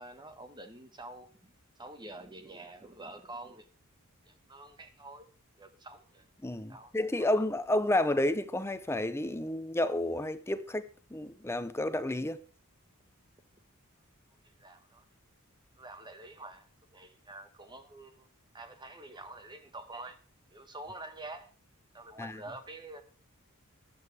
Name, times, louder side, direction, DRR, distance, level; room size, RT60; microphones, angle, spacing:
voice 1, 0.0-1.5 1.8-3.7 4.2-5.3 5.6-6.2 6.7-6.9 7.2-7.3 14.4-15.0 15.8-18.3 18.5-20.2 20.5-21.5 21.9-23.0, right 2 dB, 20° right, 1.4 m, -47 dB
voice 2, 6.4-10.8 11.1-12.4 22.2-22.4, left 1 dB, 10° left, 0.7 m, -30 dB
15.0 x 11.0 x 3.4 m
head